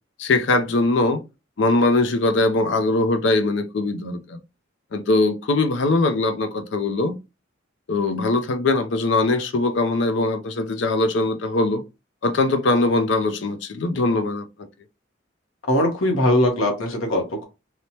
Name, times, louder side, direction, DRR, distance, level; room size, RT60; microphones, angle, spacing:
voice 1, 0.2-1.2 1.6-4.4 4.9-7.2 7.9-11.8 12.2-14.4, left 2 dB, 65° left, 0.4 m, -21 dB
voice 2, 15.7-17.5, left 1 dB, 85° left, 1.0 m, -20 dB
3.2 x 2.0 x 2.7 m
head